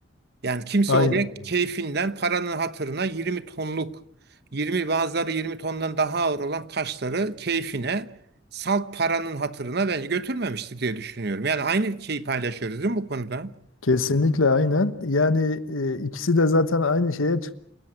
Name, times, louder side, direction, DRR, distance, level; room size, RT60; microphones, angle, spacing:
voice 1, 0.4-4.0 4.5-8.1 8.5-13.5, right 3 dB, 55° right, 1.0 m, -27 dB
voice 2, 13.8-17.5, left 3 dB, 90° left, 1.2 m, -22 dB
28.5 x 17.0 x 7.7 m
head